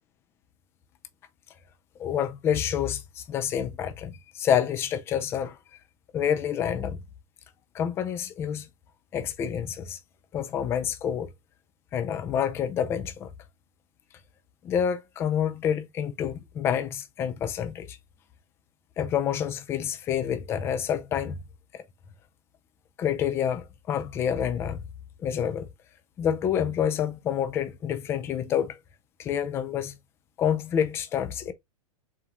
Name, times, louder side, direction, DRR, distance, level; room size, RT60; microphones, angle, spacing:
voice 1, 2.0-5.6 6.1-7.0 7.7-8.7 9.1-10.0 10.3-11.3 11.9-13.3 14.6-18.0 19.0-21.4 21.7-21.8 23.0-24.8 25.2-25.7 26.2-28.8 29.2-29.9 30.4-31.5, left 9 dB, 15° left, 0.3 m, -28 dB
3.9 x 2.3 x 2.7 m
figure-of-eight pair, 100°, 18 cm